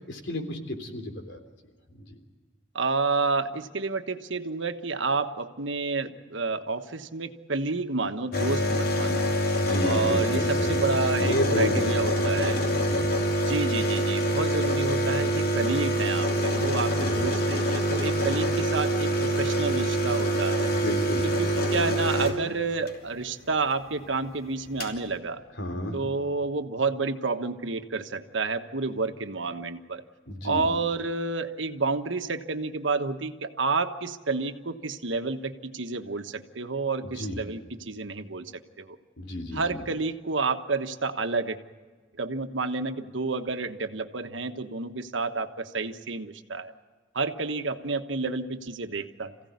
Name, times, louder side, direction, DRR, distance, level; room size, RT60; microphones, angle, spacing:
voice 1, 0.1-1.4 2.1-2.2 9.6-10.8 11.2-13.1 17.0-17.3 20.7-21.3 25.6-26.0 30.3-30.6 37.2-37.4 39.2-39.8, left 1 dB, 70° left, 5 dB, 3.5 m, -32 dB
voice 2, 2.7-9.3 9.8-12.6 13.5-20.7 21.2-25.4 25.9-30.0 30.4-39.0 39.5-41.6 42.2-46.7 47.1-49.3, right 3 dB, 80° right, 8 dB, 1.3 m, -30 dB
sound 1, 8.3-23.0 24.3-24.4 24.5-25.0, equal, 50° left, 3.2 m, -25 dB
27.0 x 16.5 x 9.6 m, 1.4 s
head